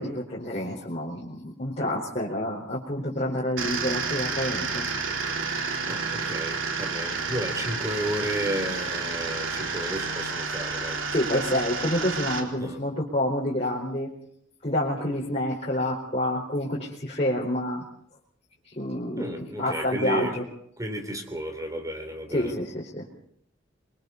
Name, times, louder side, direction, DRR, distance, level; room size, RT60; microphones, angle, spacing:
voice 1, 0.0-4.9 11.1-14.1 14.6-17.8 18.6-20.4 22.3-23.0, left 1 dB, 35° left, -4 dB, 4.5 m, -28 dB
sound 1, 3.6-12.4, right 4 dB, 80° right, 3.7 m, -30 dB
voice 2, 5.9-11.0 12.6-12.8 19.2-20.4 20.8-22.5, right 1 dB, 20° right, 5 dB, 3.2 m, -32 dB
27.5 x 23.0 x 4.1 m, 0.67 s
head